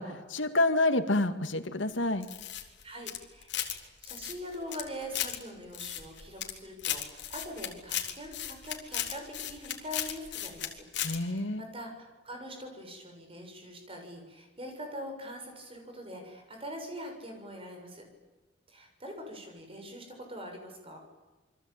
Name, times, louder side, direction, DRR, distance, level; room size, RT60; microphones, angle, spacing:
voice 1, 0.0-2.3 11.0-11.6, left 2 dB, 85° left, 9 dB, 2.1 m, -28 dB
sound 1, 2.2-3.8 4.0-5.4 5.7-6.5 6.8-10.7 10.9-11.2, left 11 dB, 65° left, 3.7 m, -35 dB
voice 2, 2.8-3.6 4.0-10.9 11.1-18.0 18.7-21.0, equal, 30° right, 3 dB, 7.0 m, -43 dB
28.5 x 23.5 x 9.0 m, 1.2 s
head